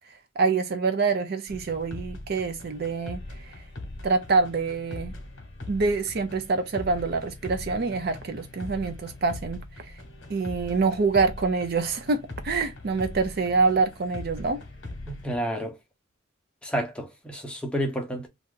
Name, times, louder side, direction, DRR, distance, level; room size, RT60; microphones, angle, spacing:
voice 1, 0.4-3.2 4.0-5.1 5.7-9.9 10.3-14.6, right 4 dB, 50° right, 0.4 m, -26 dB
sound 1, 1.5-15.4, left 2 dB, 60° left, 1.0 m, -41 dB
voice 2, 15.1-15.8 16.6-18.3, equal, 5° left, 0.7 m, -30 dB
2.7 x 2.4 x 3.5 m
head